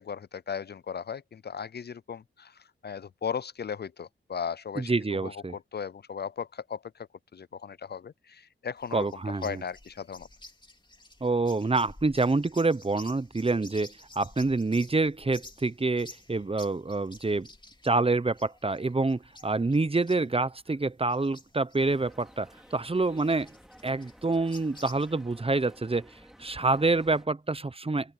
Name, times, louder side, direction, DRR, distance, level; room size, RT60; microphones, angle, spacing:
voice 1, 0.0-7.1 7.3-10.3, left 7 dB, 50° left, 0.4 m, -37 dB
voice 2, 4.8-5.5 8.9-9.6 11.2-17.5 17.8-23.5 23.8-26.1 26.4-28.1, right 3 dB, 25° right, 0.8 m, -27 dB
sound 1, 8.8-25.2, left 2 dB, 20° left, 2.8 m, -52 dB
sound 2, 21.8-27.3, equal, ahead, 3.3 m, -54 dB
open air
cardioid pair, 55°, 21 cm